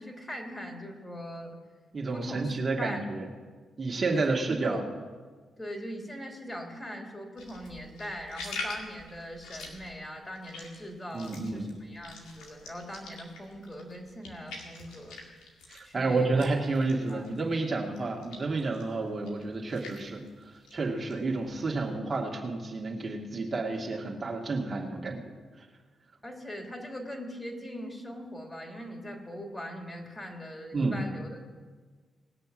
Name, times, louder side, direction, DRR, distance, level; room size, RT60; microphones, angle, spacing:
voice 1, 0.0-1.5 2.1-3.0 4.1-4.8 5.6-15.5 15.8-16.4 17.1-17.2 26.2-31.4, equal, 25° left, 1 dB, 3.4 m, -41 dB
voice 2, 1.9-3.2 3.8-4.8 11.1-11.7 15.7-20.3 20.7-25.2 30.7-31.0, right 3 dB, 45° right, -1 dB, 2.1 m, -30 dB
sound 1, 7.4-17.7 17.9-21.9, left 3 dB, 80° left, 2.1 m, -45 dB
19.5 x 6.7 x 6.2 m, 1.5 s
supercardioid pair, 45°, 0 cm